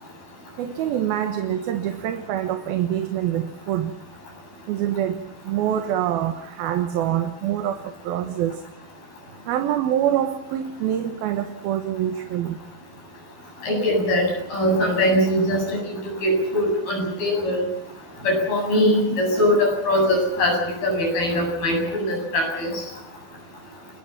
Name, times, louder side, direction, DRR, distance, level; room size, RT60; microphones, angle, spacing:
voice 1, 0.6-3.9 4.7-5.2 5.5-8.6 9.5-12.6, right 11 dB, 85° right, 7 dB, 3.2 m, -25 dB
voice 2, 13.6-15.8 16.2-17.6 18.2-20.6 20.8-22.8, left 1 dB, 80° left, 1 dB, 10.0 m, -21 dB
29.5 x 21.5 x 5.9 m, 0.80 s
omnidirectional pair, 4.2 m